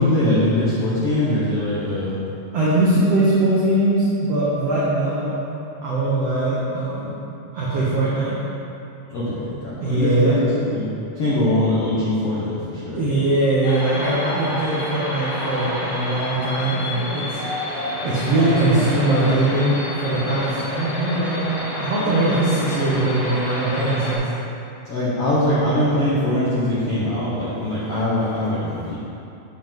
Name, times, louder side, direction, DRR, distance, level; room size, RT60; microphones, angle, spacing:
voice 1, 0.0-2.2 9.1-10.9 11.1-13.0 24.9-28.9, left 1 dB, 85° left, -9 dB, 1.3 m, -22 dB
voice 2, 2.5-5.3 5.8-7.2 7.5-8.4 9.8-10.4 12.9-21.5 21.8-24.3, right 2 dB, 85° right, -8 dB, 1.3 m, -21 dB
sound 1, 13.6-24.2, left 1 dB, 60° left, 2.7 m, -29 dB
7.5 x 7.4 x 3.7 m, 2.8 s
omnidirectional pair, 4.6 m